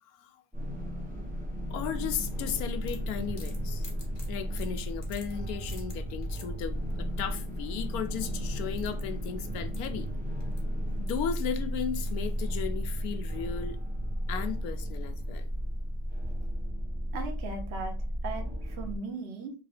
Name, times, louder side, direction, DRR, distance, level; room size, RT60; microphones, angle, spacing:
sound 1, 0.5-19.0, equal, 10° right, 0.6 m, -34 dB
voice 1, 1.7-3.9 4.3-10.1 11.0-13.8 14.3-15.5, left 8 dB, 70° left, 1.0 m, -35 dB
sound 2, 2.4-6.7 8.2-8.3 8.5-10.6 10.9-11.4 12.0-12.4, left 4 dB, 50° left, 1.4 m, -51 dB
voice 2, 17.1-18.0 18.2-19.5, right 3 dB, 50° right, 1.0 m, -38 dB
3.8 x 3.2 x 3.1 m
omnidirectional pair, 1.8 m